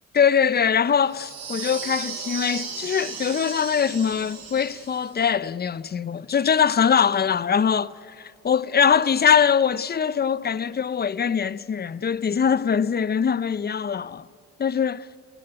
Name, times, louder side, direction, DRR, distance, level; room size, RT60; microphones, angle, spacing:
voice 1, 0.1-14.3 14.6-15.1, left 7 dB, 35° left, 0.6 m, -22 dB
sound 1, 1.1-5.1, right 6 dB, 55° right, 6.4 m, -35 dB
30.0 x 18.5 x 9.7 m
cardioid pair, 90°, 30 cm